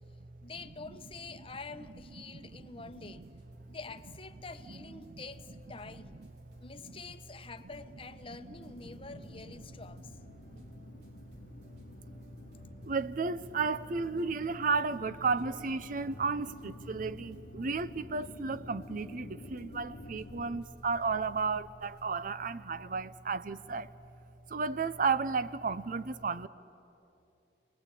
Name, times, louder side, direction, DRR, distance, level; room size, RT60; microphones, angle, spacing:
voice 1, 0.4-3.2 3.7-6.2 6.6-10.1, left 4 dB, 30° left, 0.9 m, -47 dB
voice 2, 2.3-2.8 5.1-5.2 10.5-10.6 12.8-23.9 24.5-26.5, right 4 dB, 50° right, 0.6 m, -33 dB
sound 1, 2.9-22.1, right 1 dB, 65° right, 3.5 m, -60 dB
sound 2, 8.5-20.6, left 2 dB, 65° left, 0.7 m, -51 dB
30.0 x 20.0 x 8.5 m
head